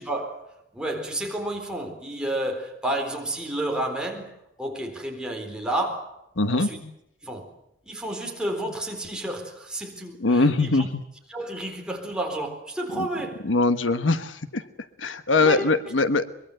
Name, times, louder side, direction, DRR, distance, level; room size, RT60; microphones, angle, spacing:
voice 1, 0.0-6.2 6.5-6.8 7.2-7.5 7.8-10.9 11.3-13.4 15.4-15.7, right 1 dB, 5° right, 4.0 m, -31 dB
voice 2, 6.4-6.7 10.2-11.0 12.9-13.1 13.4-14.6 15.0-16.3, left 3 dB, 85° left, 1.3 m, -22 dB
23.5 x 23.0 x 7.9 m
head